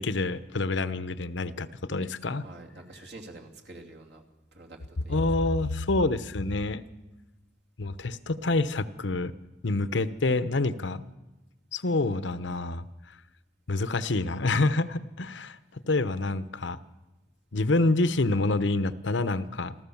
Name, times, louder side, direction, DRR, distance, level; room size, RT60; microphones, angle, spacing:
voice 1, 0.0-2.4 5.1-6.8 7.8-9.3 9.6-11.0 11.7-12.9 13.7-16.8 17.5-19.7, left 2 dB, 80° left, 13 dB, 0.9 m, -27 dB
voice 2, 2.4-4.2 4.5-5.3, right 2 dB, 65° right, 0 dB, 2.9 m, -47 dB
28.0 x 14.0 x 7.2 m, 1.1 s
head